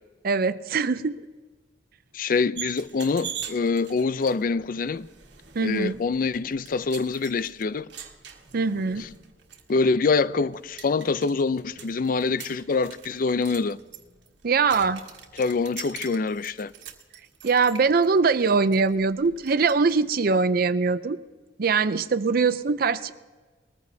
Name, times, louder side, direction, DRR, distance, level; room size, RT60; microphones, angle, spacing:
voice 1, 0.2-1.2 5.5-6.0 8.5-9.0 14.4-15.0 17.4-21.2 21.6-23.1, right 4 dB, 55° right, 0.5 m, -22 dB
voice 2, 2.1-5.1 5.6-7.9 9.7-13.8 15.4-16.7, left 4 dB, 50° left, 0.4 m, -25 dB
sound 1, 2.6-20.0, right 8 dB, 75° right, 1.5 m, -44 dB
21.0 x 14.5 x 2.7 m
head